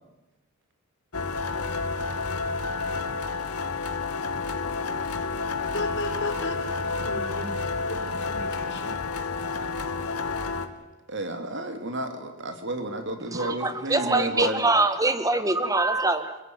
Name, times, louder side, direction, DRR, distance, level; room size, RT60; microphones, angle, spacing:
sound 1, 1.1-10.7, left 4 dB, 85° left, 2.0 m, -30 dB
voice 1, 5.7-6.6 7.0-7.5 7.9-9.0, left 2 dB, 55° left, 4 dB, 4.5 m, -34 dB
voice 2, 11.1-14.6, right 1 dB, 55° right, 7 dB, 3.1 m, -31 dB
voice 3, 13.3-16.4, right 2 dB, 15° right, 11 dB, 1.5 m, -24 dB
27.0 x 16.5 x 9.6 m, 1.1 s
head